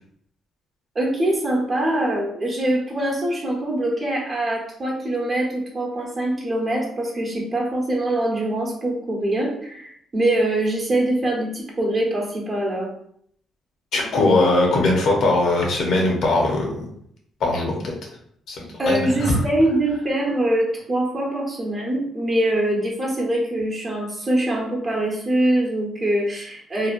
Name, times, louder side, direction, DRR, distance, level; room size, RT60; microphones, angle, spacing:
voice 1, 0.9-12.9 18.8-26.9, right 1 dB, 35° right, -2 dB, 0.9 m, -23 dB
voice 2, 13.9-16.9 17.4-17.9 18.5-19.4, left 2 dB, 70° left, 0 dB, 0.7 m, -20 dB
2.8 x 2.1 x 2.5 m, 0.68 s
cardioid pair, 90°, 0 cm